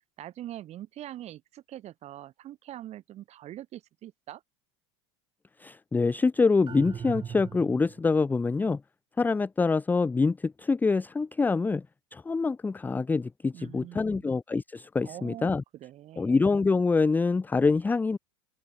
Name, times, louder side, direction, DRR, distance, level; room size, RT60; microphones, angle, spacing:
voice 1, 0.2-4.4 13.5-14.3 15.0-16.4, right 13 dB, 45° right, 3.4 m, -43 dB
voice 2, 5.6-8.8 9.2-11.8 12.1-15.6 16.2-18.2, left 4 dB, 10° left, 0.5 m, -25 dB
sound 1, 6.7-8.1, right 8 dB, 30° right, 3.3 m, -39 dB
open air
supercardioid pair, 105°, 15 cm